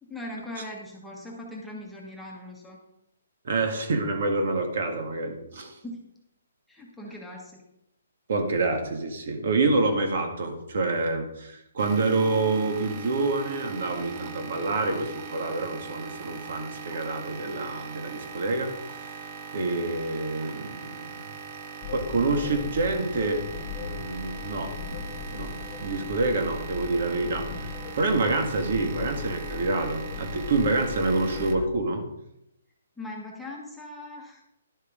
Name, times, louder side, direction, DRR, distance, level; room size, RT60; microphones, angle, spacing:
voice 1, 0.0-2.8 5.8-6.1 6.7-7.6 33.0-34.4, left 1 dB, ahead, -4 dB, 1.4 m, -40 dB
voice 2, 3.4-5.8 8.3-18.7 19.0-19.1 19.5-21.3 21.9-24.7 25.3-25.5 25.8-32.0, right 3 dB, 55° right, 4 dB, 1.9 m, -27 dB
sound 1, 11.8-31.6, right 5 dB, 30° right, 0.8 m, -40 dB
sound 2, 21.8-31.7, left 5 dB, 35° left, 0.9 m, -38 dB
11.5 x 6.5 x 5.0 m, 0.82 s
hypercardioid pair, 165°, 0 cm